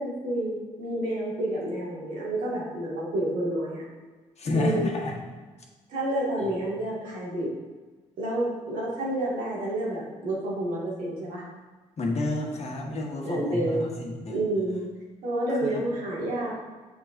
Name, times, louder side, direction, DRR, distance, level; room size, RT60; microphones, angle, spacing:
voice 1, 0.0-3.8 4.5-4.9 5.9-7.5 8.2-11.5 13.2-13.9 14.3-14.8 15.2-16.5, right 1 dB, 85° right, -5 dB, 1.8 m, -29 dB
voice 2, 4.4-5.1 6.4-6.6 12.0-14.4 15.6-15.9, left 2 dB, 50° left, 0 dB, 1.3 m, -30 dB
6.8 x 5.9 x 2.5 m, 1.3 s
supercardioid pair, 55°, 14 cm